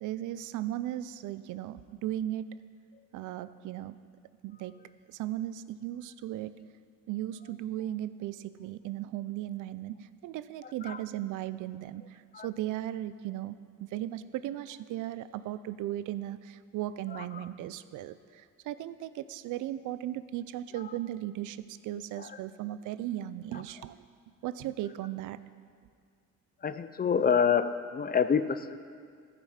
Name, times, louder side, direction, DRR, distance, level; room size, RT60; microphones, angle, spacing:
voice 1, 0.0-2.5 3.1-4.0 4.4-4.8 5.1-6.6 7.1-24.0 24.4-25.4, right 13 dB, 80° right, 15 dB, 0.5 m, -37 dB
voice 2, 10.6-11.0 12.3-12.5 17.1-17.5 20.8-20.9 22.2-22.4 26.6-28.8, left 7 dB, 30° left, 12 dB, 0.5 m, -28 dB
14.0 x 5.9 x 5.7 m, 2.1 s
cardioid pair, 90°, 30 cm